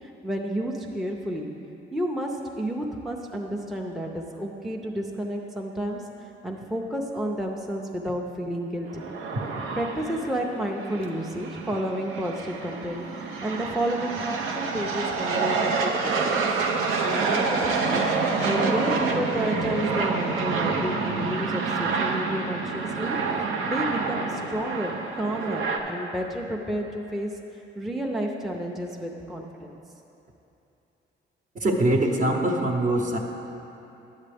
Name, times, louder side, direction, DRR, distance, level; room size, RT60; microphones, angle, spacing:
voice 1, 0.2-1.5 1.9-6.0 6.4-9.1 9.8-16.4 17.0-18.1 18.4-23.2 23.7-27.4 27.8-29.8, equal, ahead, 0 dB, 0.5 m, -31 dB
sound 1, 8.9-25.8, right 4 dB, 90° right, 0.7 m, -27 dB
voice 2, 31.5-33.2, right 1 dB, 40° right, 2 dB, 0.9 m, -23 dB
10.0 x 7.3 x 3.4 m, 2.9 s
cardioid pair, 90°, 20 cm